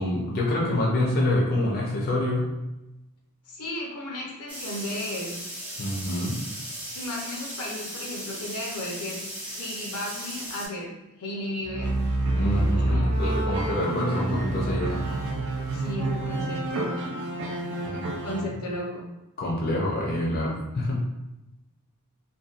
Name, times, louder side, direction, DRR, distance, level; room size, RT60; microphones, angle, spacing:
voice 1, 0.0-2.5 5.8-6.4 12.4-15.0 17.8-18.4 19.4-21.0, left 1 dB, 45° left, -4 dB, 0.5 m, -26 dB
voice 2, 3.5-5.4 6.9-9.2 9.6-10.9 11.2-11.9 12.4-13.3 15.7-17.0 18.2-19.1, left 1 dB, 85° left, -2 dB, 0.6 m, -34 dB
sound 1, 4.5-10.7, right 1 dB, 5° right, 0.5 m, -37 dB
sound 2, 11.6-18.4, right 2 dB, 65° right, 0.4 m, -27 dB
2.6 x 2.1 x 2.4 m, 0.98 s
head